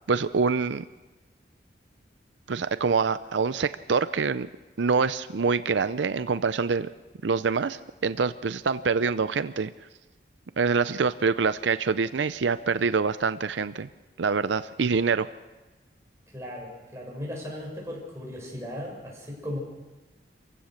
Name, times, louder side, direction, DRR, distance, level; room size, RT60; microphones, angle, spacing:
voice 1, 0.1-0.8 2.5-4.5 4.8-6.9 7.2-9.7 10.6-13.9 14.2-15.3, right 5 dB, 85° right, 13 dB, 0.6 m, -25 dB
voice 2, 16.3-19.6, left 1 dB, 15° right, -3 dB, 6.7 m, -37 dB
27.0 x 16.0 x 6.5 m, 1.2 s
head